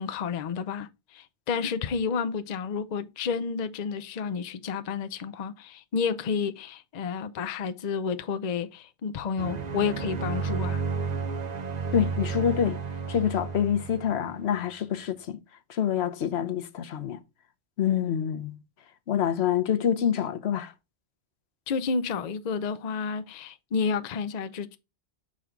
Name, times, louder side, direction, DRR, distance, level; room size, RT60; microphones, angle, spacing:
voice 1, 0.0-10.8 21.7-24.8, left 5 dB, 50° left, 0.6 m, -30 dB
sound 1, 9.4-14.5, right 5 dB, 45° right, 0.8 m, -32 dB
voice 2, 11.9-12.8 13.1-15.4 15.7-17.2 17.8-18.6 19.1-20.7, left 9 dB, 75° left, 1.0 m, -26 dB
6.4 x 4.6 x 3.7 m
omnidirectional pair, 1.1 m